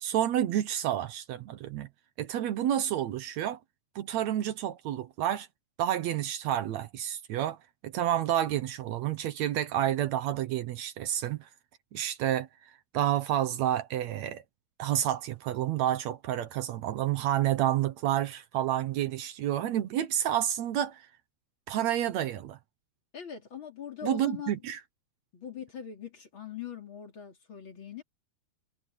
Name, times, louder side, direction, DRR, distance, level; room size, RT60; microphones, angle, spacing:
voice 1, 0.0-1.9 2.2-3.6 4.0-5.5 5.8-7.6 7.8-11.5 11.9-12.5 12.9-14.4 14.8-21.1 21.7-22.6 24.0-24.8, right 11 dB, 70° right, 2.1 m, -29 dB
voice 2, 23.1-24.5 25.3-28.0, left 8 dB, 40° left, 3.8 m, -41 dB
omnidirectional pair, 3.4 m